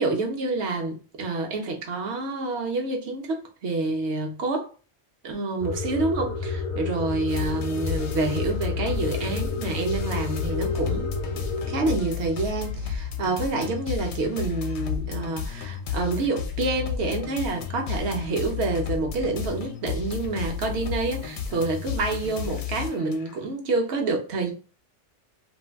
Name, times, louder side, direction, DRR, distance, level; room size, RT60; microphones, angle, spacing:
voice 1, 0.0-4.7 5.2-11.1 11.7-24.5, right 3 dB, 70° right, 0.9 m, -28 dB
sound 1, 5.6-12.0, left 4 dB, 60° left, 0.5 m, -30 dB
sound 2, 7.3-23.4, left 8 dB, 80° left, 0.9 m, -32 dB
2.6 x 2.2 x 3.3 m
omnidirectional pair, 1.2 m